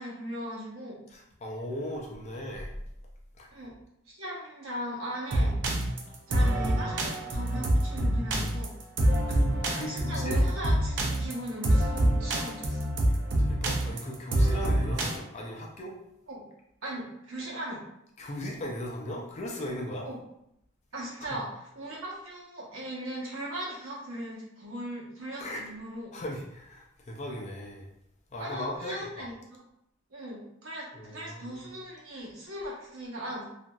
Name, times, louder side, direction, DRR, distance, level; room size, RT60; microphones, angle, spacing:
voice 1, 0.0-1.0 3.5-3.7 4.1-5.6 6.3-8.7 9.7-12.8 16.3-16.5 16.8-17.8 20.0-20.2 20.9-26.1 28.4-29.6 30.1-33.4, right 1 dB, 80° right, -4 dB, 0.9 m, -38 dB
voice 2, 1.1-2.7 3.4-3.5 6.1-6.8 9.3-10.4 13.4-15.9 18.2-20.1 21.2-21.4 25.4-25.6 26.1-27.9 28.3-29.3 30.9-31.7, left 1 dB, 30° left, -1 dB, 0.4 m, -38 dB
sound 1, 5.3-15.2, right 1 dB, 55° right, 0.4 m, -26 dB
2.8 x 2.5 x 2.2 m, 0.79 s
head